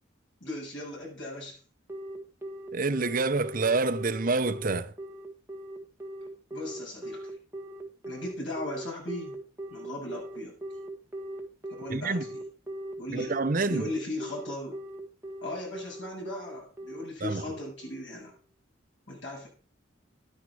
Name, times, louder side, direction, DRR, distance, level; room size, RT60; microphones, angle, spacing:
voice 1, 0.4-1.6 6.5-7.3 8.1-9.4 9.7-10.5 11.8-12.3 13.0-13.3 13.7-14.8 15.4-18.3 19.1-19.5, left 1 dB, 70° left, 7.3 m, -37 dB
Telephone, 1.9-18.1, right 1 dB, 15° right, 1.7 m, -40 dB
voice 2, 2.7-4.9 11.9-12.2 13.1-13.8 17.2-17.4, right 3 dB, 45° right, 0.8 m, -27 dB
11.5 x 10.0 x 4.8 m
head